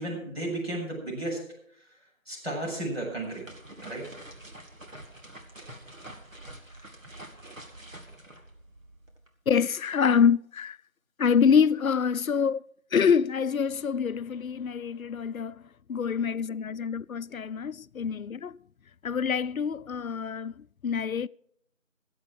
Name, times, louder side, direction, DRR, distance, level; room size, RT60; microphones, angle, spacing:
voice 1, 0.0-1.4 2.3-3.5 3.8-4.1, right 1 dB, 50° right, 7.3 m, -33 dB
sound 1, 3.0-9.3, right 1 dB, 75° right, 2.6 m, -47 dB
voice 2, 9.5-10.8 11.2-12.6 12.9-15.6 15.9-18.6 19.0-21.3, left 6 dB, 90° left, 0.5 m, -26 dB
21.0 x 7.9 x 4.7 m
figure-of-eight pair, 180°, 40 cm